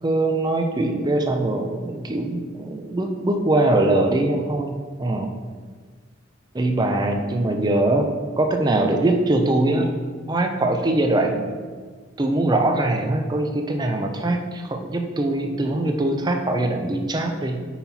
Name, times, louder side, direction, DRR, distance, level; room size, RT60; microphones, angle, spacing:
voice 1, 0.0-5.3 6.5-8.1 8.4-9.9 10.3-11.8 12.2-17.6, right 2 dB, 20° right, 4 dB, 0.5 m, -22 dB
5.7 x 4.2 x 4.2 m, 1.5 s
head